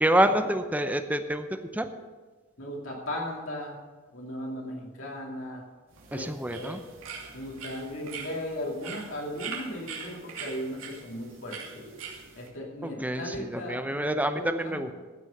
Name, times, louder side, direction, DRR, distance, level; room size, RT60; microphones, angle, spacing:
voice 1, 0.0-1.5 1.7-1.9 6.1-6.8 13.0-14.9, right 1 dB, 10° right, 8 dB, 0.7 m, -27 dB
voice 2, 2.6-3.8 4.1-5.6 6.1-6.8 7.3-11.8 12.3-14.8, left 1 dB, 70° left, -2 dB, 2.7 m, -37 dB
sound 1, 5.9-12.5, right 5 dB, 80° right, 2.8 m, -42 dB
15.0 x 6.3 x 6.6 m, 1.3 s
head